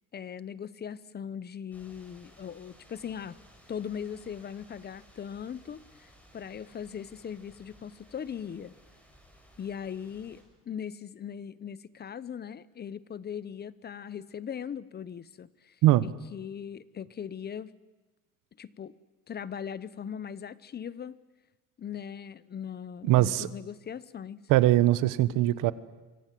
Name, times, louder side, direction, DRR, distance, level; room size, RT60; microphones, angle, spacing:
voice 1, 0.1-3.4 3.7-8.7 9.6-15.8 16.0-17.7 18.6-19.0 19.3-21.2 21.8-24.4, left 8 dB, 30° left, 18 dB, 0.9 m, -39 dB
sound 1, 1.7-10.4, equal, 5° left, 6.7 m, -58 dB
voice 2, 23.0-23.5 24.5-25.7, right 15 dB, 75° right, 16 dB, 1.3 m, -21 dB
27.0 x 24.5 x 7.7 m, 1.2 s
cardioid pair, 130°, 32 cm